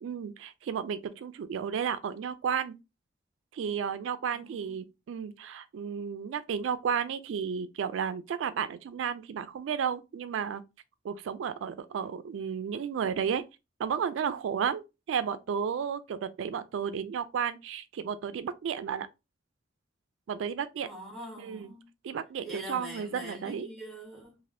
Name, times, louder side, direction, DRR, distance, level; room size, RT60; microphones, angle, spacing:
voice 1, 0.0-2.8 3.5-10.6 11.0-13.4 13.8-19.1 20.3-20.9 21.4-21.7 22.0-23.7, right 7 dB, 85° right, 0.3 m, -33 dB
voice 2, 4.3-4.8 20.8-21.9 22.4-24.4, equal, ahead, 1.1 m, -44 dB
3.3 x 2.5 x 2.5 m
head